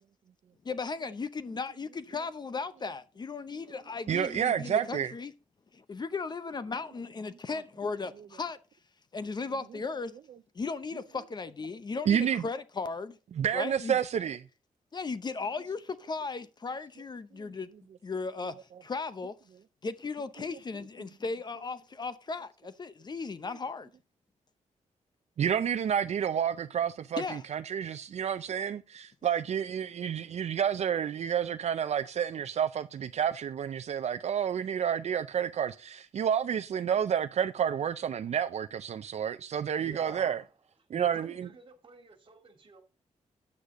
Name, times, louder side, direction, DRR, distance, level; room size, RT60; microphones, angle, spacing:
voice 1, 0.6-5.3 5.7-8.6 9.1-10.1 10.5-13.2 13.5-14.0 14.9-17.7 18.0-18.6 18.8-19.3 19.8-23.9 27.2-27.4, left 4 dB, 35° left, 0.7 m, -36 dB
voice 2, 4.1-5.1 12.1-12.4 13.4-14.4 25.4-40.4 40.9-41.5, right 8 dB, 60° right, 0.5 m, -30 dB
voice 3, 39.8-40.3 40.9-42.8, right 3 dB, 40° right, 2.4 m, -47 dB
9.7 x 8.2 x 3.7 m
wide cardioid pair, 115°, 13 cm